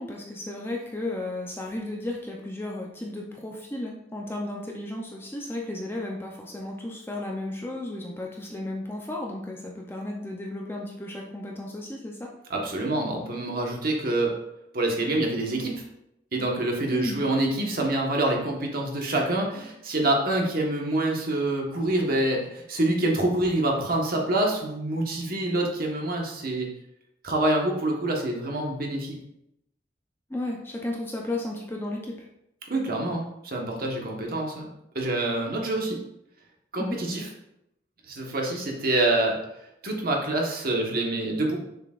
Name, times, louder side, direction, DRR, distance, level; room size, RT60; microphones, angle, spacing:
voice 1, 0.0-12.3 16.9-17.2 30.3-32.3 36.8-37.0, left 1 dB, 15° left, -1 dB, 0.6 m, -34 dB
voice 2, 12.5-14.3 14.7-15.8 16.3-26.7 27.2-29.2 32.7-34.7 34.9-36.0 36.7-37.3 38.1-39.4 39.8-41.6, right 1 dB, 55° right, 0 dB, 1.3 m, -26 dB
6.6 x 6.6 x 2.5 m, 0.81 s
head